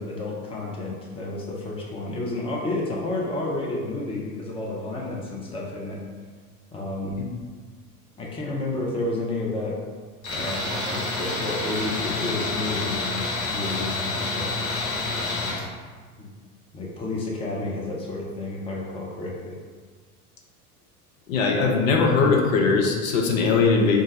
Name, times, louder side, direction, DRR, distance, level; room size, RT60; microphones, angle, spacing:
voice 1, 0.0-6.0 6.7-7.1 8.1-9.8 10.3-14.5 15.2-15.6 16.2-16.3 16.7-19.5, left 2 dB, 10° left, -3 dB, 0.6 m, -31 dB
Tools, 10.2-15.6, left 2 dB, 40° left, 1.2 m, -28 dB
voice 2, 21.3-24.0, left 4 dB, 60° left, 1 dB, 0.7 m, -20 dB
3.8 x 2.6 x 3.9 m, 1.5 s
figure-of-eight pair, 70°, 45 cm